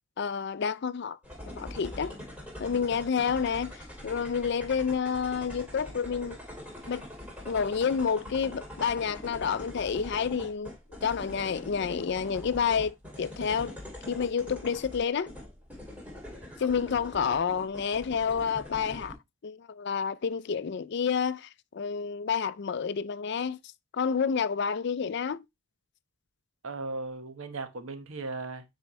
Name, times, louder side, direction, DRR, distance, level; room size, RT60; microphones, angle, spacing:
voice 1, 0.2-1.2 1.5-2.2 2.6-3.7 4.0-6.4 6.9-7.0 7.4-10.7 11.0-13.8 14.1-15.3 16.6-19.2 19.4-23.6 23.9-25.4, left 6 dB, 55° left, 0.4 m, -29 dB
sound 1, 1.2-19.1, left 1 dB, 5° right, 2.6 m, -43 dB
voice 2, 26.6-28.6, right 3 dB, 75° right, 1.1 m, -37 dB
9.4 x 4.5 x 3.1 m
head